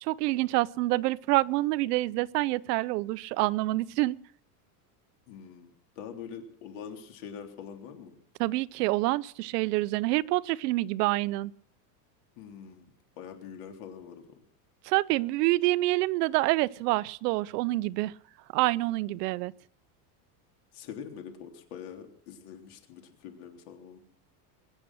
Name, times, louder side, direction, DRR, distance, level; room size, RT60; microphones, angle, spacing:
voice 1, 0.0-4.2 8.4-11.5 14.8-18.1 18.5-19.5, right 19 dB, 75° right, 0.7 m, -27 dB
voice 2, 5.3-8.2 12.4-12.9 13.2-14.4 20.7-24.0, left 7 dB, 60° left, 3.6 m, -44 dB
22.0 x 9.8 x 6.4 m
supercardioid pair, 165°, 48 cm